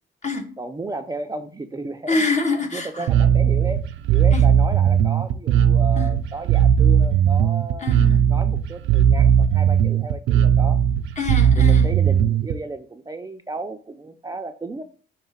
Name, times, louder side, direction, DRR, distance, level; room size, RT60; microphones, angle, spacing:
voice 1, 0.6-2.2 2.7-3.8 4.1-7.9 8.3-10.8 11.6-14.8, right 3 dB, 20° right, 0.5 m, -33 dB
voice 2, 2.1-3.1 4.3-4.5 5.9-6.1 7.8-8.3 11.2-11.9, left 3 dB, 35° left, 1.3 m, -25 dB
Bass guitar, 3.1-12.5, right 9 dB, 85° right, 0.5 m, -17 dB
5.6 x 3.3 x 5.6 m
cardioid pair, 90°, 20 cm